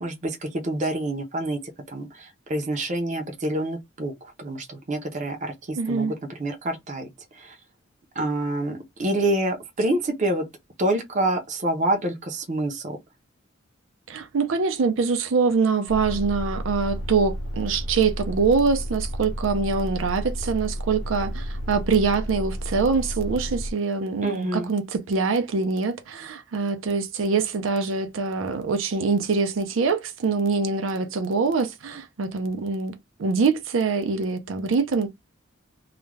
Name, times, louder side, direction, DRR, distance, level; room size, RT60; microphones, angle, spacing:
voice 1, 0.0-1.6 1.9-4.1 4.4-6.1 6.4-7.1 7.3-7.6 8.2-10.4 10.8-13.0 24.2-24.7, right 1 dB, 40° right, 0.6 m, -27 dB
voice 2, 5.8-6.1 14.1-32.9 33.2-35.1, right 4 dB, 80° right, 0.5 m, -24 dB
sound 1, 15.9-23.7, equal, 80° left, 0.5 m, -31 dB
2.4 x 2.1 x 3.2 m
head